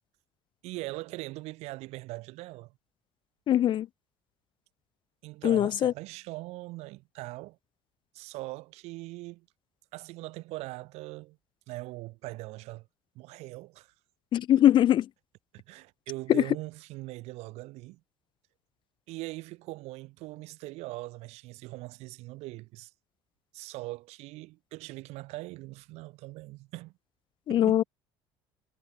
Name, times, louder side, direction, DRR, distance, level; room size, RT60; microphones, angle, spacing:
voice 1, 0.6-2.7 5.2-7.6 8.1-9.5 9.9-11.4 11.7-12.9 13.2-13.9 14.6-14.7 15.5-18.0 19.1-22.9 23.5-26.9 27.5-27.9, right 21 dB, 75° right, 5.4 m, -41 dB
voice 2, 3.5-3.9 5.4-5.9 14.3-15.0 16.3-16.4 27.5-27.8, left 11 dB, 45° left, 0.4 m, -22 dB
supercardioid pair, 90°, 11 cm